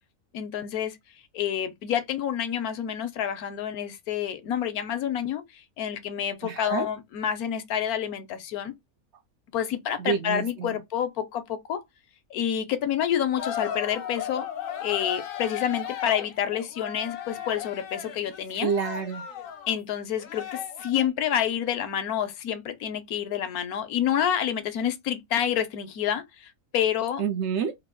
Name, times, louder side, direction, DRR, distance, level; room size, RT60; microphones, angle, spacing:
voice 1, 0.3-1.0 1.3-8.7 9.5-11.8 12.3-14.5 14.8-18.7 19.7-27.2, left 9 dB, 85° left, 1.2 m, -28 dB
voice 2, 6.4-6.9 10.0-10.8 18.5-19.2 27.2-27.7, right 7 dB, 65° right, 0.8 m, -28 dB
sound 1, 13.4-19.8 20.2-21.1, left 9 dB, 65° left, 1.1 m, -36 dB
3.3 x 2.7 x 3.7 m
omnidirectional pair, 1.5 m